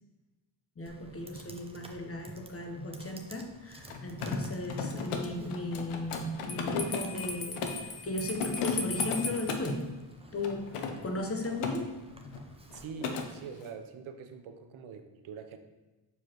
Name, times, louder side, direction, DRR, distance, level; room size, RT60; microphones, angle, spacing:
voice 1, 0.8-9.9 10.3-12.0, left 1 dB, 25° left, 3 dB, 1.1 m, -36 dB
Computer keyboard, 0.9-12.8, right 2 dB, 10° right, 0.7 m, -53 dB
Mechanisms, 3.8-7.9 8.3-9.8 10.4-11.8 12.1-12.4 12.7-13.3, left 5 dB, 85° left, 0.9 m, -36 dB
Bell, 6.5-9.6, left 4 dB, 45° left, 0.7 m, -37 dB
voice 2, 12.7-15.6, right 6 dB, 70° right, 7 dB, 0.8 m, -44 dB
6.8 x 4.6 x 3.1 m, 1.2 s
cardioid pair, 75°, 50 cm